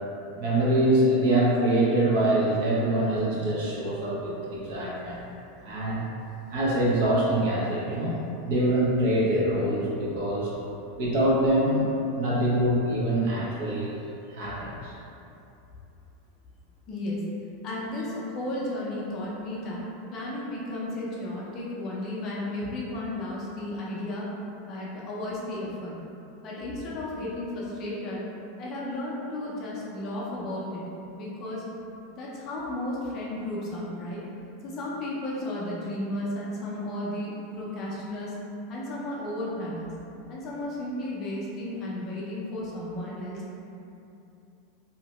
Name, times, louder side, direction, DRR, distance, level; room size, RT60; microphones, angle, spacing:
voice 1, 0.4-5.2 5.6-6.1 6.5-10.5 11.0-14.0 14.3-14.9, right 1 dB, 55° right, -5 dB, 0.7 m, -24 dB
voice 2, 16.9-17.2 17.6-19.8 20.1-24.3 24.7-25.9 26.4-28.2 28.6-30.8 31.1-31.6 32.1-34.2 34.6-38.4 38.7-39.9 40.3-43.4, left 1 dB, 30° left, -6 dB, 0.5 m, -33 dB
2.7 x 2.1 x 3.0 m, 2.8 s
supercardioid pair, 165°, 0 cm